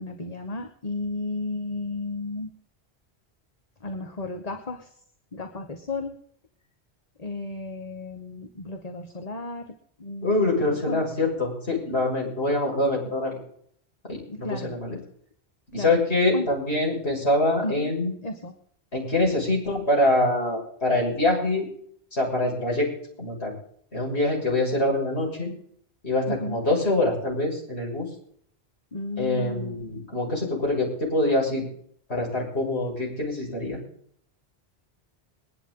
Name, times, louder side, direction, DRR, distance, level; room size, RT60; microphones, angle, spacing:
voice 1, 0.0-2.5 3.8-4.9 5.3-6.1 7.2-9.7 10.0-11.0 14.3-14.7 15.7-15.9 16.3-16.5 17.6-17.9 18.2-18.5 26.3-26.6 28.9-29.8, left 2 dB, 35° left, 5 dB, 1.5 m, -33 dB
voice 2, 10.2-13.3 14.1-15.0 15.7-18.1 18.9-21.7 22.1-22.9 23.2-23.5 23.9-25.5 26.0-28.1 29.2-31.6 32.1-33.8, left 2 dB, 85° left, -3 dB, 6.9 m, -24 dB
22.0 x 11.0 x 3.9 m, 0.63 s
omnidirectional pair, 1.1 m